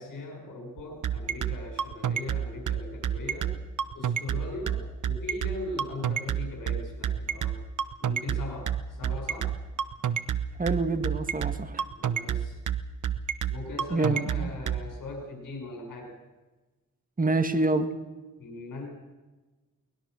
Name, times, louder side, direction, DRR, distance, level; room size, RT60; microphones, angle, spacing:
voice 1, 0.0-3.6 3.9-7.6 8.0-9.6 12.0-12.6 13.5-16.1 18.4-18.9, left 2 dB, 90° left, 2 dB, 5.6 m, -39 dB
sound 1, 0.8-14.8, right 9 dB, 65° right, 1.1 m, -28 dB
voice 2, 10.6-11.8 13.9-14.5 17.2-17.9, right 2 dB, 25° right, 9 dB, 1.8 m, -26 dB
23.0 x 20.0 x 6.3 m, 1.2 s
cardioid pair, 85°, 32 cm